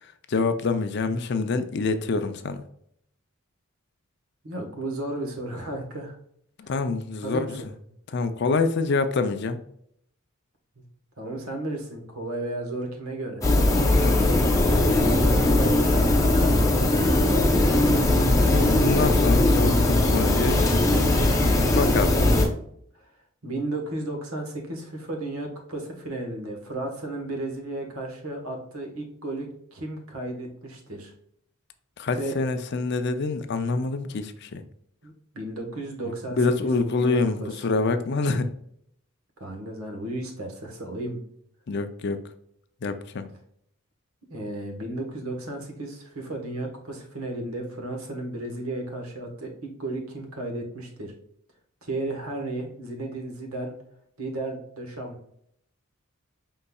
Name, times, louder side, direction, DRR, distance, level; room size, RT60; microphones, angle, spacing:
voice 1, 0.0-2.6 6.6-7.6 8.1-9.6 14.0-14.4 18.4-21.0 21.7-22.1 32.0-34.6 36.0-38.5 41.7-42.2 42.8-43.3, left 3 dB, 50° left, 9 dB, 0.4 m, -26 dB
voice 2, 4.4-6.2 6.6-6.7 7.2-7.5 11.2-13.4 14.9-18.8 23.0-23.1 23.4-29.5 29.7-31.1 32.2-32.4 35.0-37.5 39.4-41.2 44.3-51.1 51.8-53.7 54.2-55.2, right 2 dB, 80° right, 2 dB, 1.3 m, -34 dB
sound 1, 13.4-22.5, left 1 dB, 15° left, 0.7 m, -20 dB
5.3 x 3.8 x 2.3 m, 0.69 s
head